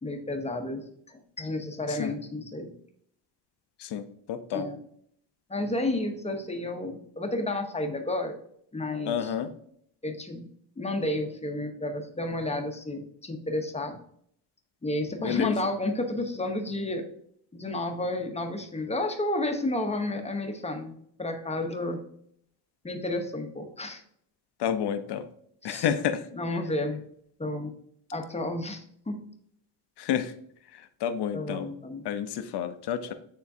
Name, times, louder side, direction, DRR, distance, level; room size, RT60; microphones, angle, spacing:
voice 1, 0.0-2.7 4.5-4.8 5.5-8.4 8.7-9.3 10.0-10.5 10.8-14.0 14.8-17.1 17.5-20.9 21.2-22.0 22.8-24.0 25.6-25.8 26.4-27.0 27.4-27.7 28.1-29.2 31.3-32.0, left 2 dB, 15° left, 5 dB, 0.9 m, -31 dB
voice 2, 3.8-4.7 9.0-9.5 15.2-15.6 24.6-25.3 25.6-26.3 30.0-30.3 30.7-31.7 32.0-33.1, left 9 dB, 70° left, 10 dB, 0.8 m, -30 dB
9.4 x 3.8 x 2.7 m, 0.66 s
cardioid pair, 100°, 42 cm